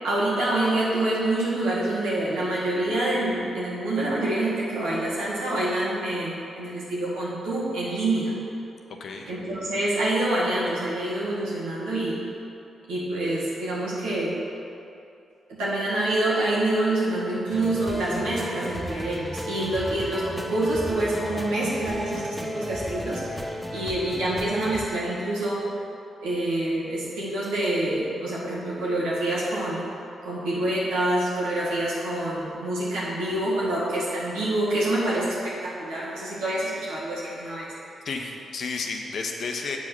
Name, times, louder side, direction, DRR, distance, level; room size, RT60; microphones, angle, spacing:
voice 1, 0.0-8.3 9.3-12.2 12.9-14.4 15.5-25.7 26.2-29.8 30.2-37.7, right 1 dB, 80° right, -7 dB, 1.9 m, -26 dB
voice 2, 9.0-9.3 19.8-19.9 38.0-39.8, left 4 dB, 65° left, 2 dB, 0.8 m, -32 dB
sound 1, 17.5-24.9, equal, 5° left, 0.9 m, -34 dB
7.1 x 5.0 x 6.1 m, 2.7 s
hypercardioid pair, 40°, 0 cm